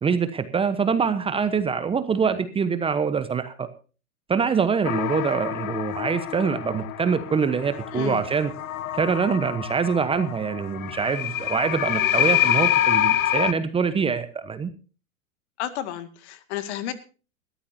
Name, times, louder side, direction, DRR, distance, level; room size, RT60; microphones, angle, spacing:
voice 1, 0.0-3.7 4.3-8.5 8.9-14.7, right 6 dB, 15° right, 12 dB, 1.0 m, -24 dB
sound 1, 4.8-13.5, left 12 dB, 70° left, 0.9 m, -26 dB
voice 2, 7.9-8.2 15.6-16.9, left 11 dB, 50° left, 11 dB, 2.1 m, -31 dB
20.5 x 14.0 x 2.8 m, 0.36 s
hypercardioid pair, 115°, 43 cm